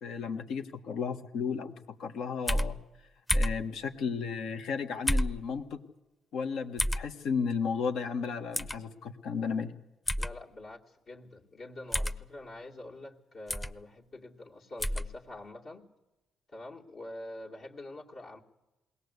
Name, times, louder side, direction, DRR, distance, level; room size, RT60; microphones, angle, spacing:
voice 1, 0.0-2.8 3.3-5.8 6.3-9.7, left 6 dB, 75° left, 9 dB, 1.5 m, -34 dB
Single clicks Keyboard Sound, 2.5-2.7 3.3-3.6 5.1-5.4 6.8-7.0 8.5-8.8 10.1-10.3 11.9-12.2 13.5-13.7 14.8-15.1, equal, 15° left, 0.8 m, -28 dB
voice 2, 10.2-15.9 16.5-18.4, left 1 dB, 55° left, -2 dB, 2.3 m, -46 dB
21.0 x 18.0 x 8.3 m, 1.0 s
cardioid pair, 90°, 0 cm